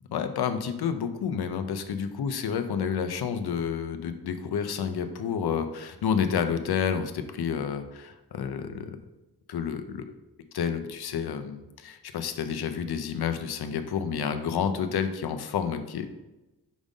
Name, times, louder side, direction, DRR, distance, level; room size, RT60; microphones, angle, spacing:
voice 1, 0.1-9.0 9.5-10.1 10.5-16.1, left 7 dB, 75° left, 8 dB, 0.6 m, -30 dB
5.2 x 5.1 x 3.7 m, 1.0 s
wide cardioid pair, 120°, 38 cm